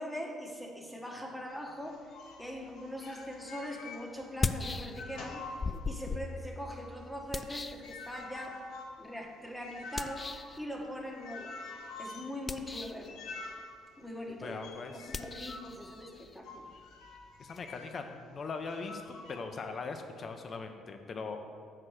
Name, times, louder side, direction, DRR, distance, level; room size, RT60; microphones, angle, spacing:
voice 1, 0.0-2.0 2.4-5.4 5.8-8.6 9.0-10.3 10.6-11.6 12.0-13.2 14.0-14.6 14.9-16.7, left 1 dB, 5° left, 0 dB, 1.3 m, -41 dB
sound 1, 1.5-4.5 4.8-6.2 6.6-18.1 18.6-19.4, left 3 dB, 75° left, 1.0 m, -48 dB
sound 2, 3.2-3.3 4.2-5.3 5.6-8.5 10.0-10.6 12.3-13.1 15.1-17.6, left 4 dB, 25° left, 0.3 m, -38 dB
voice 2, 14.4-15.1 17.4-21.4, left 4 dB, 40° left, 6 dB, 0.8 m, -40 dB
7.9 x 4.3 x 6.4 m, 2.2 s
cardioid pair, 95°, 0 cm